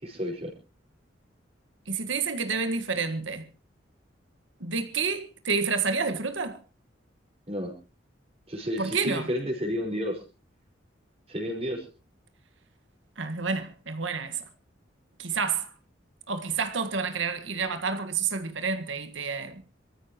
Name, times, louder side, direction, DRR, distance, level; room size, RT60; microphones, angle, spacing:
voice 1, 0.0-0.5 7.5-7.7 8.5-10.2 11.3-11.8, equal, 30° right, 5.0 m, -31 dB
voice 2, 1.9-3.4 4.6-6.6 8.8-9.3 13.2-14.4 15.2-15.7 16.3-19.6, right 5 dB, 85° right, 1.6 m, -29 dB
26.0 x 14.0 x 3.0 m
head